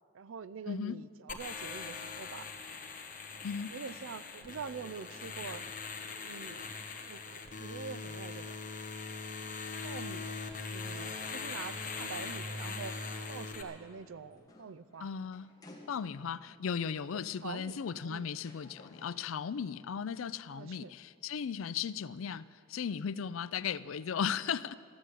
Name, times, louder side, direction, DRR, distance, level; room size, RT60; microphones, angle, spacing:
voice 1, 0.1-2.5 3.7-5.6 6.2-8.6 9.8-10.3 10.6-12.9 13.3-15.1 17.1-18.3 20.5-20.9 23.6-23.7, right 5 dB, 85° right, 16 dB, 0.5 m, -45 dB
voice 2, 0.7-1.0 3.4-3.7 15.0-15.5 15.9-24.7, left 7 dB, 85° left, 17 dB, 0.4 m, -36 dB
sound 1, 1.3-13.6, left 4 dB, 40° left, 1.3 m, -41 dB
sound 2, 3.3-6.2 6.6-6.7 12.1-16.4 17.6-17.7 18.4-19.5, left 1 dB, 20° left, 1.7 m, -58 dB
14.0 x 11.5 x 8.2 m, 2.4 s
head